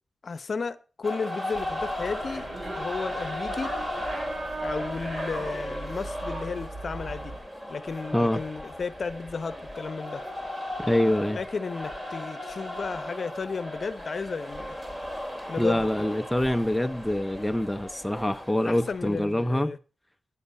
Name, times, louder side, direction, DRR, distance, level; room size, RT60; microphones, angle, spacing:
voice 1, 0.2-2.5 2.8-3.7 4.6-7.3 7.7-10.2 11.3-14.8 15.5-15.9 18.6-19.8, left 4 dB, 50° left, 0.8 m, -33 dB
sound 1, 1.0-19.6, left 1 dB, 15° right, 2.3 m, -36 dB
sound 2, 1.5-7.4, right 2 dB, 50° right, 5.4 m, -38 dB
voice 2, 10.8-11.4 15.6-19.7, left 1 dB, 5° left, 0.5 m, -25 dB
9.7 x 8.0 x 6.4 m
wide cardioid pair, 115°, 0 cm